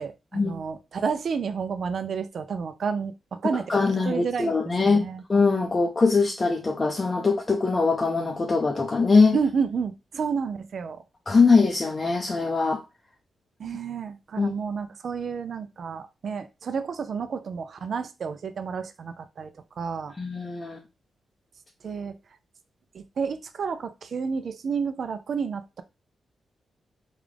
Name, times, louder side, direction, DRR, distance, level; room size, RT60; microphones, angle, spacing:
voice 1, 0.0-5.2 9.3-11.0 13.6-19.5 19.8-20.1 21.8-22.2 22.9-25.8, right 6 dB, 60° right, 0.3 m, -30 dB
voice 2, 3.5-9.4 11.3-12.8 14.4-14.5 20.2-20.8, left 4 dB, 30° left, 0.5 m, -22 dB
3.7 x 2.4 x 3.3 m
cardioid pair, 100°, 0 cm